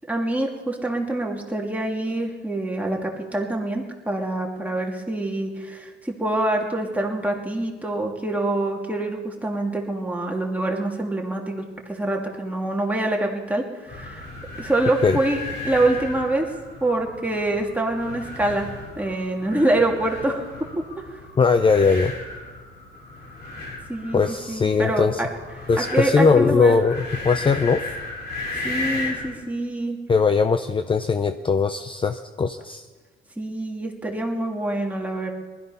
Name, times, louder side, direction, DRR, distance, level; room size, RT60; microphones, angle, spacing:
voice 1, 0.1-14.3 14.6-16.5 16.8-18.7 19.0-20.5 21.0-21.2 23.9-25.3 25.8-26.8 28.6-30.0 33.4-35.3, right 2 dB, 5° right, 0 dB, 2.5 m, -25 dB
sound 1, 13.9-29.4, left 2 dB, 55° left, 4.4 m, -35 dB
voice 2, 21.4-22.1 24.1-25.2 25.7-27.8 30.1-32.8, left 5 dB, 25° left, 9 dB, 0.6 m, -20 dB
19.5 x 13.0 x 5.6 m, 1.4 s
cardioid pair, 90°, 20 cm